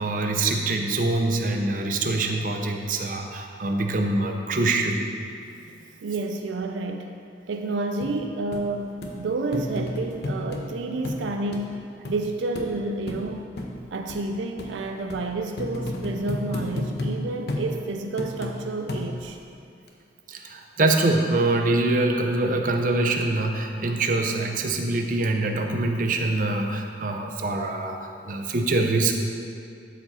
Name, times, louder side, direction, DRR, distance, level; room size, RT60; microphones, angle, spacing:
voice 1, 0.0-5.1 20.3-29.1, right 2 dB, 45° right, 3 dB, 0.6 m, -24 dB
voice 2, 6.0-7.1 7.5-11.8 12.1-13.5 13.9-19.4, right 2 dB, 90° right, 5 dB, 0.5 m, -30 dB
sound 1, 8.0-8.1 8.5-8.6 9.0-9.1 9.5-10.6 11.0-11.2 11.5-11.6 12.0-12.2 12.5-12.7 13.1-13.2 13.6-13.7 14.1-14.2 14.6-14.7 15.1-15.2 15.6-17.1 17.5-17.7 18.2-18.5 18.9-19.3 19.9-20.0, left 1 dB, 60° left, 0.9 m, -31 dB
11.5 x 4.7 x 4.2 m, 2.4 s
head